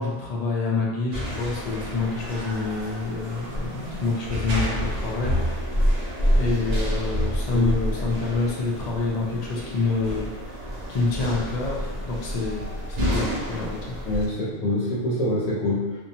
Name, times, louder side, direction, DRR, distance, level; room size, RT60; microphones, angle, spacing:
voice 1, 0.0-5.3 6.3-10.3 10.9-14.0, left 3 dB, 55° left, -4 dB, 0.4 m, -27 dB
sound 1, 1.1-14.3, equal, 60° right, 0.4 m, -28 dB
voice 2, 14.1-16.0, left 1 dB, 80° left, -8 dB, 1.0 m, -25 dB
2.6 x 2.2 x 2.7 m, 1.3 s
omnidirectional pair, 1.3 m